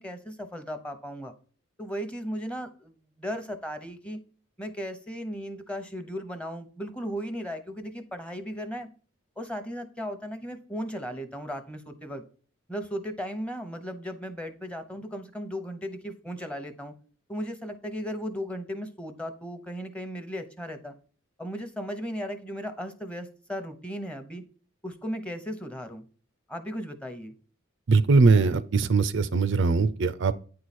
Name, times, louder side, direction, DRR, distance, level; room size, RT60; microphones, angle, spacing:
voice 1, 0.0-1.3 1.8-2.9 3.2-4.2 4.6-8.9 9.4-12.2 12.7-16.9 17.3-20.9 21.4-24.4 24.8-26.0 26.5-27.3, equal, 5° left, 0.9 m, -36 dB
voice 2, 27.9-30.3, right 4 dB, 60° right, 0.5 m, -21 dB
9.3 x 4.7 x 4.2 m
head